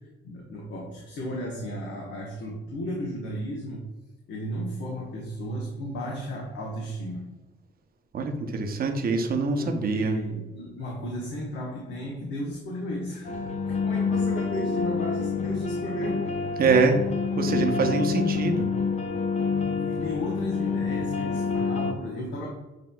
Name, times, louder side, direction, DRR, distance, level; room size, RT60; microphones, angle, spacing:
voice 1, 0.2-3.8 4.3-7.2 9.6-16.4 19.6-22.5, equal, 65° left, -3 dB, 1.0 m, -34 dB
voice 2, 8.1-10.2 16.6-17.0 17.4-18.7, right 4 dB, 50° right, 5 dB, 0.7 m, -24 dB
sound 1, 13.2-21.9, left 5 dB, 35° left, 0.5 m, -27 dB
7.5 x 2.9 x 2.2 m, 1.1 s
cardioid pair, 90°, 20 cm